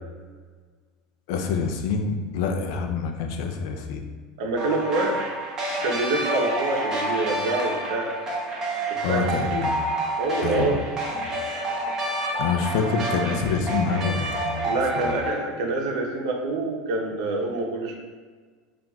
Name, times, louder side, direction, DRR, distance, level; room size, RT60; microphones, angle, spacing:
voice 1, 1.3-4.1 9.0-9.7 10.4-10.8 12.4-15.2, left 5 dB, 65° left, 4 dB, 0.4 m, -26 dB
voice 2, 4.4-5.2 5.8-8.1 9.1-9.2 10.2-10.8 14.6-18.0, right 3 dB, 80° right, 1 dB, 0.7 m, -26 dB
sound 1, 4.6-15.4, right 1 dB, 20° right, 0.7 m, -28 dB
5.5 x 2.5 x 2.3 m, 1.5 s
supercardioid pair, 165°, 3 cm